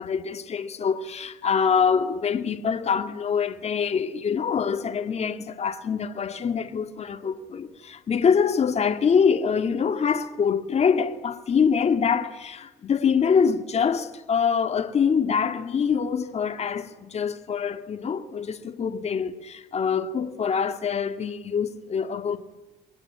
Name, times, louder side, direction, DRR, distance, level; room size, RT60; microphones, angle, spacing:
voice 1, 0.0-22.4, left 6 dB, 40° left, 2.0 m, -25 dB
29.0 x 22.5 x 8.6 m
cardioid pair, 110°, 17 cm